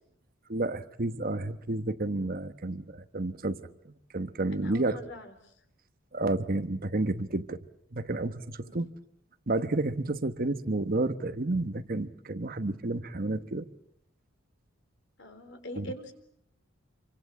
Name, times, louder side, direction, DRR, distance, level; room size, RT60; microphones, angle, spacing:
voice 1, 0.5-3.6 3.8-5.0 6.1-7.6 7.9-8.9 9.5-13.7 15.7-15.9, right 2 dB, 45° right, 11 dB, 1.1 m, -31 dB
voice 2, 4.5-5.5 8.6-8.8 15.2-16.1, left 1 dB, 60° left, 8 dB, 3.8 m, -43 dB
28.0 x 24.5 x 7.5 m, 0.72 s
head